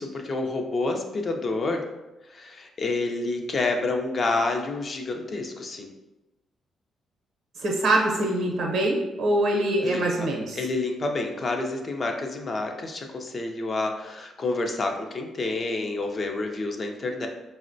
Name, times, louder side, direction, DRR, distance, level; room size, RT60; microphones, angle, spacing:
voice 1, 0.0-1.8 2.3-5.9 9.8-10.3 10.5-17.3, left 3 dB, 40° left, 3 dB, 0.4 m, -28 dB
voice 2, 7.5-10.6, right 1 dB, 70° right, -2 dB, 0.7 m, -24 dB
4.1 x 2.0 x 2.6 m, 1.0 s
cardioid pair, 105°, 0 cm